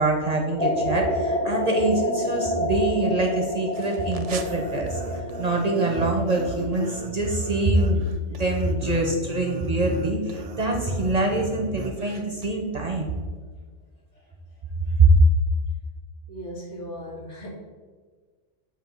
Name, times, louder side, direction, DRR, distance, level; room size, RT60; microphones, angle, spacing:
voice 1, 0.0-5.0 5.4-8.0 8.3-13.1 15.0-15.1, right 2 dB, 40° right, 1 dB, 0.7 m, -24 dB
sound 1, 0.6-6.5, left 1 dB, 5° left, 0.7 m, -28 dB
sound 2, 3.7-12.5, right 5 dB, 75° right, 0.3 m, -38 dB
voice 2, 16.3-17.5, equal, 80° left, -3 dB, 1.9 m, -37 dB
7.5 x 2.6 x 5.3 m, 1.5 s
omnidirectional pair, 1.2 m